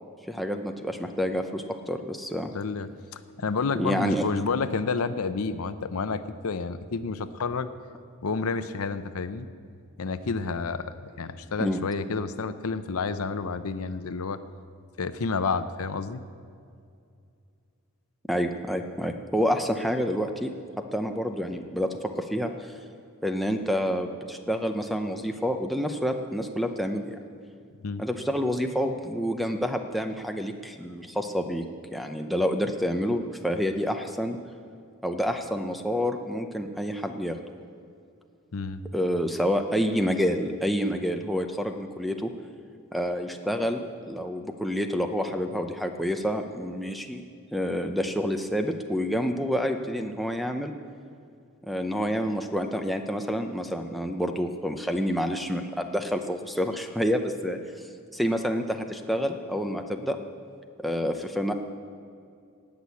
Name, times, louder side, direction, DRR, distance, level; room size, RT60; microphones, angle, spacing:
voice 1, 0.3-2.5 3.8-4.2 11.6-11.8 18.3-20.5 20.9-21.9 22.2-22.7 23.2-27.2 28.0-34.4 35.0-37.4 38.9-42.3 42.9-47.2 47.5-50.7 51.6-57.6 58.1-60.2 60.8-61.5, equal, ahead, 4 dB, 0.6 m, -28 dB
voice 2, 2.5-2.9 3.4-7.7 8.2-9.5 10.0-10.8 11.2-14.4 15.0-16.2 27.8-28.0 38.5-38.8, left 4 dB, 85° left, 12 dB, 0.6 m, -29 dB
18.0 x 6.2 x 8.4 m, 2.4 s
head